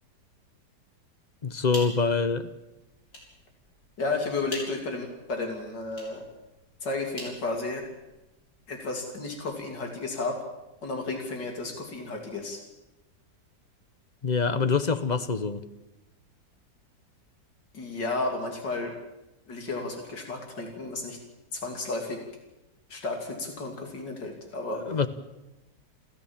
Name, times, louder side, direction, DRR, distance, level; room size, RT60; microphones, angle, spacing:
sound 1, 1.4-8.2, left 1 dB, 65° left, 6.2 m, -46 dB
voice 1, 1.4-2.5 14.2-15.6 24.9-25.1, left 4 dB, 35° left, 12 dB, 0.8 m, -25 dB
voice 2, 4.0-6.2 6.8-7.8 8.7-10.4 10.8-12.6 17.7-19.0 19.5-21.2 21.5-22.2 22.9-24.8, left 3 dB, 80° left, 2 dB, 3.6 m, -32 dB
28.5 x 14.5 x 7.3 m, 0.99 s
omnidirectional pair, 1.9 m